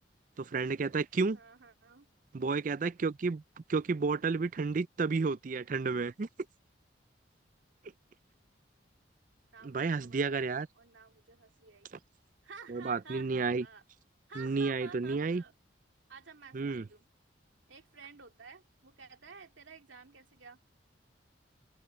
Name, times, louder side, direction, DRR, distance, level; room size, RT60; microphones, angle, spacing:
voice 1, 0.4-1.4 2.3-3.4 3.7-6.3 9.6-10.7 12.7-13.6 14.4-15.4 16.5-16.8, right 4 dB, 45° right, 0.4 m, -31 dB
voice 2, 1.3-2.1 9.5-11.9 12.4-13.8 14.3-15.5 16.1-17.1 17.7-20.6, right 5 dB, 85° right, 2.5 m, -52 dB
open air
head